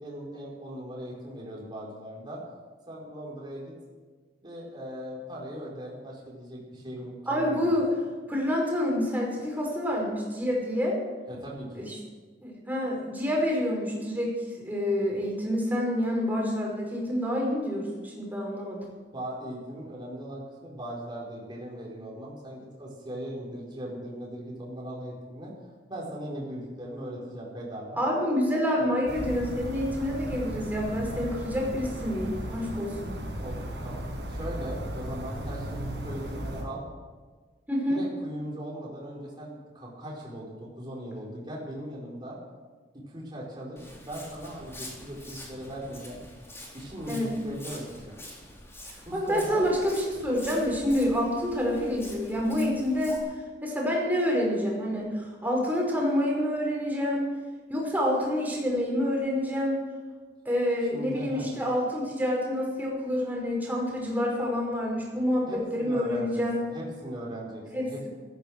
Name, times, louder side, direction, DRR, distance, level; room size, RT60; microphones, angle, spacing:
voice 1, 0.0-2.4 2.9-3.7 4.4-7.8 11.3-11.9 19.1-25.5 25.9-28.0 28.8-28.9 33.4-36.8 37.9-42.4 43.1-46.2 46.7-48.1 49.0-49.6 60.9-61.5 65.5-68.1, right 1 dB, 25° right, -4 dB, 4.4 m, -39 dB
voice 2, 7.3-7.9 8.3-11.0 11.7-12.0 12.4-18.8 28.0-33.1 37.7-38.0 47.1-47.3 49.1-53.2 53.6-57.3 57.7-59.8 60.5-66.6 67.7-68.1, equal, 10° right, -2 dB, 5.5 m, -28 dB
sound 1, 29.1-36.6, equal, 75° right, 5.1 m, -36 dB
Walk footsteps, 43.8-53.2, left 1 dB, 15° left, 3.9 m, -46 dB
15.0 x 14.5 x 6.3 m, 1.4 s
head